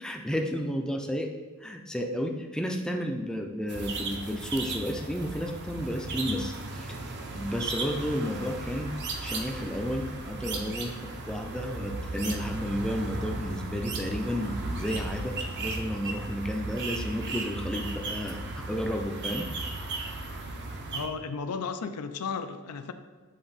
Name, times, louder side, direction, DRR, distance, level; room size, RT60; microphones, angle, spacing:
voice 1, 0.0-1.3 1.6-7.0 7.3-8.9 9.2-10.9 11.3-19.5, equal, 5° left, 2 dB, 0.4 m, -32 dB
sound 1, 3.7-21.1, right 2 dB, 50° right, 0.7 m, -35 dB
voice 2, 20.9-22.9, left 5 dB, 85° left, 9 dB, 0.4 m, -34 dB
7.8 x 3.6 x 4.0 m, 1.3 s
head